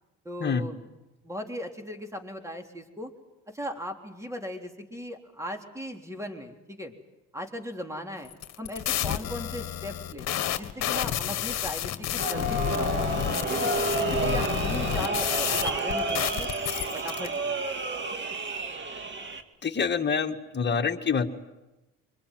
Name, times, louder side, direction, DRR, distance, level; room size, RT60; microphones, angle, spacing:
voice 1, 0.2-0.8 1.2-3.1 3.5-6.9 7.3-8.3 8.6-10.3 10.5-13.2 13.5-16.5 16.9-17.4, equal, 10° right, 4 dB, 3.7 m, -38 dB
sound 1, 8.3-17.3, left 11 dB, 60° left, 1.6 m, -30 dB
sound 2, 12.2-19.4, right 2 dB, 40° right, 2.4 m, -30 dB
voice 2, 19.6-21.3, left 6 dB, 35° left, 5 dB, 2.1 m, -26 dB
25.0 x 22.0 x 9.3 m, 1.0 s
supercardioid pair, 85°, 30 cm